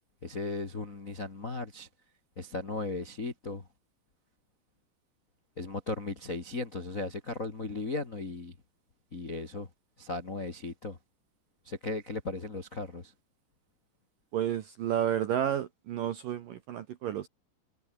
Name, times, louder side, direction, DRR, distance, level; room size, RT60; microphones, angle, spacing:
voice 1, 0.2-1.9 2.4-3.6 5.6-8.5 9.1-9.7 10.0-11.0 11.6-13.1, left 3 dB, 40° left, 1.2 m, -36 dB
voice 2, 14.3-17.3, right 10 dB, 70° right, 2.2 m, -31 dB
omnidirectional pair, 5.4 m